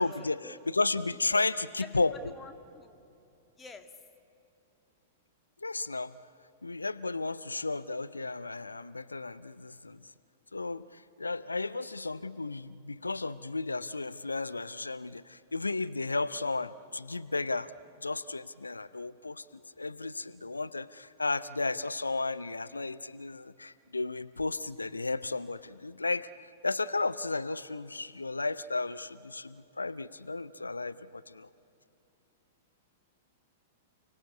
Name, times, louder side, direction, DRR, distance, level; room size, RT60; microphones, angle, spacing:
voice 1, 0.0-2.1 5.6-6.1 6.6-10.0 10.5-17.7 18.0-19.5 19.8-31.5, left 3 dB, 80° left, 16 dB, 0.5 m, -33 dB
voice 2, 1.8-3.0 3.6-4.0, left 4 dB, 15° left, 6 dB, 2.0 m, -48 dB
30.0 x 20.0 x 8.4 m, 2.8 s
figure-of-eight pair, 100°, 0 cm